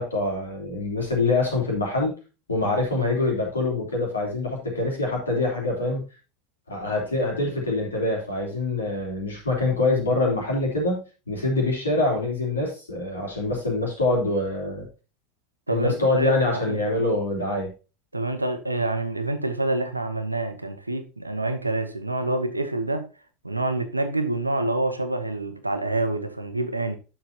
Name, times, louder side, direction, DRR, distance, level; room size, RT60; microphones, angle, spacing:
voice 1, 0.0-2.1 2.5-6.0 6.7-14.9 15.7-17.7, left 2 dB, 75° left, 3.0 m, -25 dB
voice 2, 15.7-16.8 18.1-23.1 23.4-27.0, right 2 dB, 85° right, 0.9 m, -27 dB
10.0 x 7.0 x 2.8 m
figure-of-eight pair, 75°, 0 cm